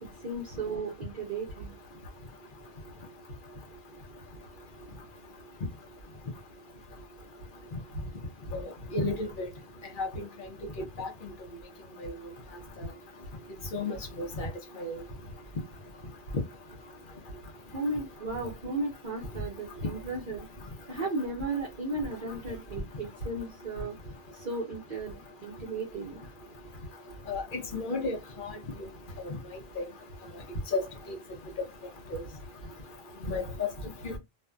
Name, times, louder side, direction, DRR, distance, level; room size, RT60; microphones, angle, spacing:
voice 1, 0.0-1.7 17.7-20.5 20.9-23.9 24.3-26.3, right 2 dB, 50° right, 0.9 m, -35 dB
voice 2, 8.5-9.5 10.0-10.1 11.0-11.1 12.0-12.1 13.7-14.5 14.8-15.0 27.3-28.5 29.2-29.3 29.8-29.9 30.7-30.8 31.1-31.2 32.1-32.2 33.2-33.7 34.0-34.2, left 3 dB, 55° left, 0.9 m, -32 dB
2.6 x 2.3 x 2.2 m
omnidirectional pair, 1.1 m